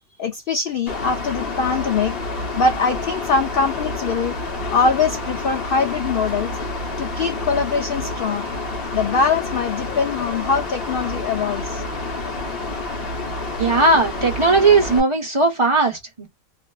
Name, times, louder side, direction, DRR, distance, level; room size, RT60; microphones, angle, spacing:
voice 1, 0.2-2.2 2.6-6.5 7.0-8.5 8.9-11.8, left 4 dB, 85° left, 0.4 m, -22 dB
Mechanical fan, 0.9-15.0, left 2 dB, 50° left, 0.9 m, -28 dB
voice 2, 13.6-16.3, right 3 dB, 25° right, 0.7 m, -17 dB
2.4 x 2.4 x 2.2 m
omnidirectional pair, 1.5 m